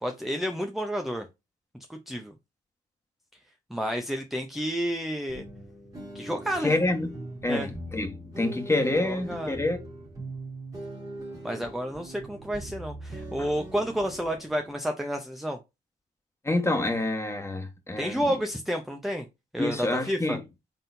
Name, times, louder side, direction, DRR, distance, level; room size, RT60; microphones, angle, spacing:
voice 1, 0.0-1.3 1.9-2.3 3.7-5.4 6.1-6.8 7.5-7.7 9.0-9.6 11.4-15.6 18.0-19.3 19.5-20.4, equal, ahead, 0.7 m, -30 dB
sound 1, 5.3-14.8, right 2 dB, 20° right, 2.0 m, -41 dB
voice 2, 6.6-9.8 13.4-13.5 16.4-18.4 19.6-20.4, left 2 dB, 15° left, 1.3 m, -27 dB
4.1 x 3.7 x 2.7 m
supercardioid pair, 65°, 18 cm